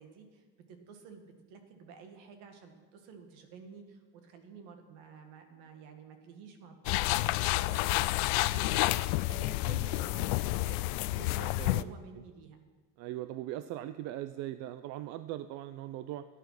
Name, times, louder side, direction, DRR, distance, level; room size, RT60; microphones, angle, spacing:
voice 1, 0.0-8.9 9.3-12.6, right 5 dB, 75° right, 5 dB, 2.0 m, -51 dB
sound 1, 6.8-11.8, left 19 dB, 80° left, 0.5 m, -29 dB
voice 2, 11.4-11.9 13.0-16.3, right 13 dB, 55° right, 12 dB, 0.5 m, -40 dB
14.0 x 9.4 x 5.9 m, 1.4 s
cardioid pair, 160°, 32 cm